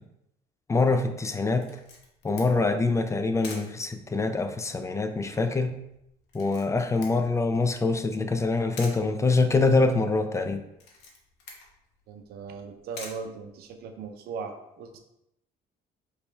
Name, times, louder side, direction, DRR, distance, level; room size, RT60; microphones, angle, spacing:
voice 1, 0.7-1.7 2.2-5.7 6.3-10.6, left 3 dB, 15° left, 8 dB, 0.4 m, -24 dB
Camera, 1.6-14.1, left 4 dB, 85° left, 1.0 m, -49 dB
voice 2, 12.1-15.0, right 5 dB, 70° right, 5 dB, 0.6 m, -38 dB
5.0 x 3.2 x 3.3 m, 0.82 s
cardioid pair, 110°, 17 cm